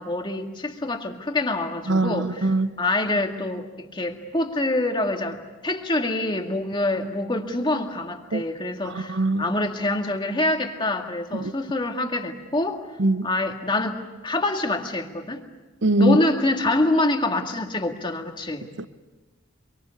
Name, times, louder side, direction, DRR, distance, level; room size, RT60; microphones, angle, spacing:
voice 1, 0.0-2.5 2.8-12.8 13.2-15.4 16.0-18.7, left 2 dB, 25° left, 4 dB, 2.0 m, -26 dB
voice 2, 1.9-2.7 8.3-8.4 8.9-9.5 11.3-11.5 13.0-13.3 15.8-16.2 18.8-18.9, right 1 dB, 60° right, 13 dB, 0.8 m, -22 dB
26.5 x 24.0 x 8.4 m, 1.2 s
head